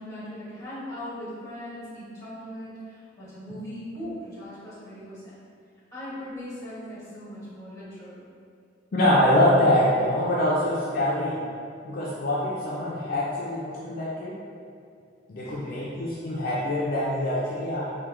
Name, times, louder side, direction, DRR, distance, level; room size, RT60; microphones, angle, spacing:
voice 1, 0.0-5.2 5.9-8.2 15.4-15.9, equal, 15° left, -11 dB, 1.2 m, -39 dB
voice 2, 8.9-11.4 11.8-14.3 15.3-18.0, left 1 dB, 50° left, -7 dB, 0.4 m, -24 dB
3.4 x 2.2 x 3.0 m, 2.4 s
head